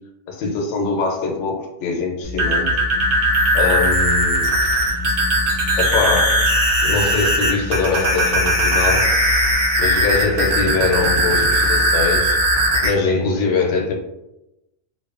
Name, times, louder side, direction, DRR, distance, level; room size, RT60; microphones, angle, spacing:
voice 1, 0.3-2.7 3.5-4.5 5.8-6.4 6.8-9.1 9.8-12.4 12.8-13.9, left 4 dB, 85° left, 2 dB, 0.9 m, -22 dB
sound 1, 2.2-12.9, equal, 75° right, 0.9 m, -18 dB
2.5 x 2.1 x 2.4 m, 0.91 s
omnidirectional pair, 1.2 m